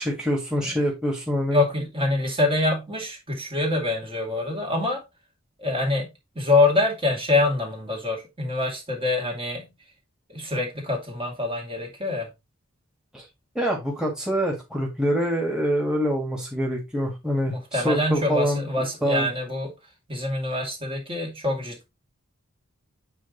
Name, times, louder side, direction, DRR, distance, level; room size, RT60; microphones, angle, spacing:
voice 1, 0.0-1.6 13.1-13.2 13.5-19.3, equal, 5° right, 2.2 m, -25 dB
voice 2, 1.5-5.0 5.6-6.1 6.4-9.6 10.3-12.3 17.5-19.7 20.1-21.9, left 2 dB, 25° right, 2.3 m, -25 dB
8.3 x 4.0 x 4.0 m
head